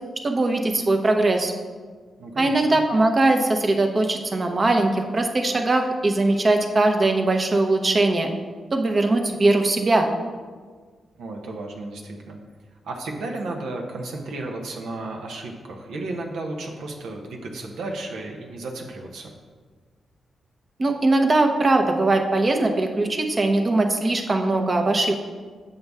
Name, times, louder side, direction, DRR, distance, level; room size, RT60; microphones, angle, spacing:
voice 1, 0.2-1.5 2.4-8.3 8.7-10.1 20.8-25.1, right 2 dB, 40° right, 4 dB, 0.9 m, -20 dB
voice 2, 2.2-2.8 11.2-12.4 12.8-19.3, right 2 dB, 85° right, 1 dB, 0.9 m, -33 dB
7.7 x 5.6 x 3.5 m, 1.5 s
cardioid pair, 65°, 0 cm